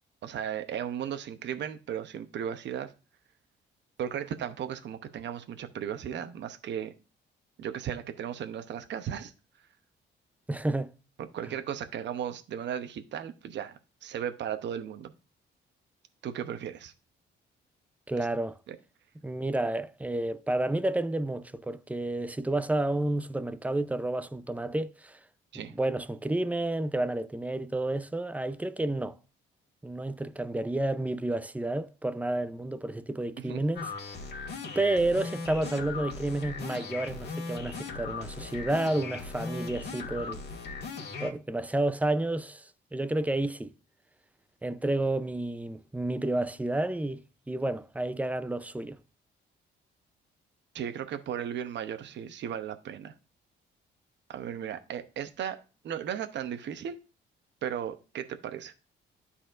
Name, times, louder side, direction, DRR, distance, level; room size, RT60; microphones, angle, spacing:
voice 1, 0.2-2.9 4.0-6.9 7.6-9.3 11.2-15.1 16.2-16.9 18.2-18.3 18.7-18.8 25.5-25.7 33.4-33.6 50.7-53.1 54.3-57.0 57.6-58.7, right 9 dB, 65° right, 0.8 m, -36 dB
voice 2, 10.5-10.9 18.1-18.5 19.2-25.2 25.5-29.2 29.8-33.9 34.8-40.4 41.2-43.7 44.6-49.0, right 2 dB, 5° right, 0.5 m, -30 dB
sound 1, 33.8-41.3, left 4 dB, 55° left, 1.9 m, -38 dB
12.0 x 4.2 x 2.5 m
cardioid pair, 90°, 20 cm